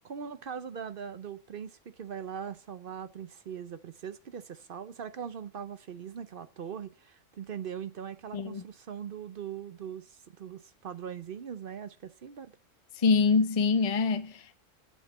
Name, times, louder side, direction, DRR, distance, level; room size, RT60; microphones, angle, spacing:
voice 1, 0.0-12.5, right 7 dB, 55° right, 0.8 m, -41 dB
voice 2, 8.3-8.6 13.0-14.6, left 4 dB, 35° left, 0.8 m, -25 dB
8.2 x 8.0 x 8.3 m
omnidirectional pair, 1.3 m